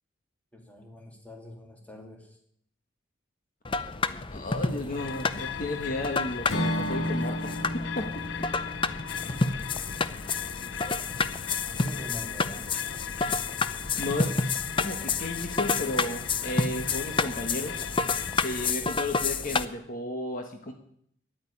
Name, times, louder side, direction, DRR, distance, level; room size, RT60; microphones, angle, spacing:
voice 1, 0.5-2.4 10.9-11.1 11.5-12.7, left 1 dB, 10° left, 1 dB, 2.5 m, -46 dB
sound 1, 3.6-19.6, left 4 dB, 25° left, 0.6 m, -30 dB
voice 2, 4.3-8.1 14.0-17.9 18.4-20.7, left 1 dB, 45° left, 4 dB, 1.3 m, -34 dB
sound 2, 5.0-18.7, left 8 dB, 70° left, 0.6 m, -39 dB
Acoustic guitar / Strum, 6.5-10.6, equal, 85° left, 2.1 m, -33 dB
10.5 x 8.8 x 9.9 m, 0.68 s
head